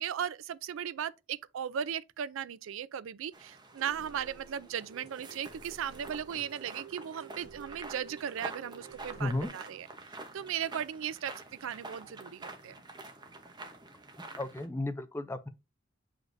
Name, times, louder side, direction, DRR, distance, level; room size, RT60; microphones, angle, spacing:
voice 1, 0.0-9.9 10.3-11.3 11.6-12.8, right 9 dB, 75° right, 0.4 m, -37 dB
sound 1, 3.3-14.7, right 2 dB, 20° right, 0.8 m, -48 dB
sound 2, 3.8-9.5, right 4 dB, 55° right, 2.0 m, -52 dB
voice 2, 9.2-9.5 14.4-15.5, left 2 dB, 10° left, 0.5 m, -33 dB
7.8 x 5.0 x 2.6 m
head